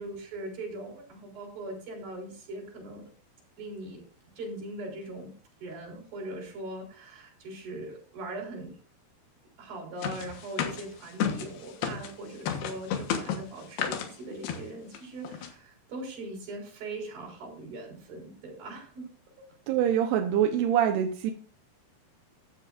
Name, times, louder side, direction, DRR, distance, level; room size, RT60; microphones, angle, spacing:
voice 1, 0.0-3.1 3.6-4.0 4.4-5.3 5.6-8.8 9.6-19.1, right 2 dB, 65° right, 0 dB, 5.8 m, -40 dB
sound 1, 10.0-12.1 12.5-14.1 14.4-14.6 14.9-15.0 15.2-15.5, left 8 dB, 75° left, 3.3 m, -32 dB
voice 2, 19.7-21.3, right 9 dB, 90° right, 4 dB, 3.0 m, -25 dB
14.5 x 10.5 x 2.5 m, 0.40 s
omnidirectional pair, 4.6 m